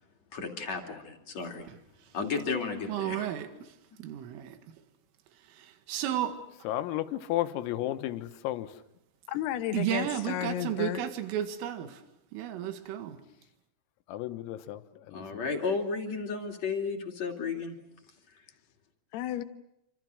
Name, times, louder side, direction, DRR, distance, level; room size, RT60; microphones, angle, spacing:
voice 1, 0.3-1.7 2.1-3.3 15.1-17.8, left 4 dB, 40° left, 3.3 m, -33 dB
voice 2, 2.9-3.7 4.0-4.6 5.5-6.4 9.7-12.0 12.3-13.2, right 11 dB, 75° right, 4.5 m, -33 dB
voice 3, 6.7-8.7 14.1-14.8 15.1-15.2, left 14 dB, 90° left, 4.0 m, -32 dB
voice 4, 9.3-11.0 19.1-19.4, left 12 dB, 70° left, 2.7 m, -32 dB
29.0 x 26.0 x 6.4 m
omnidirectional pair, 5.9 m